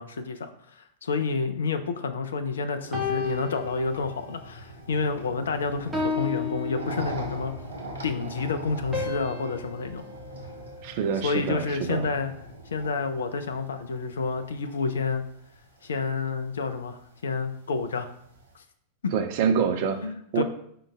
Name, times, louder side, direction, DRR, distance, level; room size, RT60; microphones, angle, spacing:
voice 1, 0.0-7.5 8.0-10.0 11.2-12.3 12.7-15.2 15.8-18.1 18.5-18.6 20.0-20.4, left 4 dB, 65° left, 9 dB, 0.3 m, -29 dB
sound 1, 2.8-18.5, right 1 dB, 70° right, 0.8 m, -42 dB
sound 2, 2.9-4.5 4.9-5.2 5.9-7.6 8.9-11.3, left 4 dB, 10° right, 1.0 m, -34 dB
voice 2, 10.8-12.1 19.1-20.0 20.3-20.4, right 7 dB, 50° right, 6 dB, 0.5 m, -26 dB
4.9 x 3.8 x 2.2 m, 0.69 s
figure-of-eight pair, 90°, 0 cm